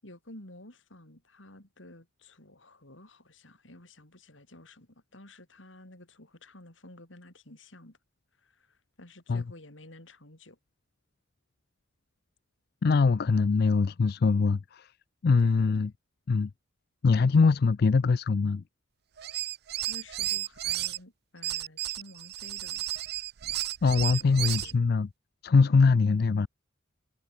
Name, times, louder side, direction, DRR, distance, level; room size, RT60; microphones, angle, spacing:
voice 1, 0.0-8.0 8.4-10.6 15.4-15.9 17.3-17.6 19.9-22.9 24.2-24.8 25.7-26.1, left 1 dB, 80° left, 5.8 m, -51 dB
voice 2, 12.8-14.9 15.2-15.9 16.3-16.5 17.0-18.6 23.8-25.1 25.4-26.5, left 4 dB, 55° left, 0.4 m, -23 dB
sound 1, 19.2-21.0 21.4-24.7, right 14 dB, 55° right, 0.5 m, -33 dB
head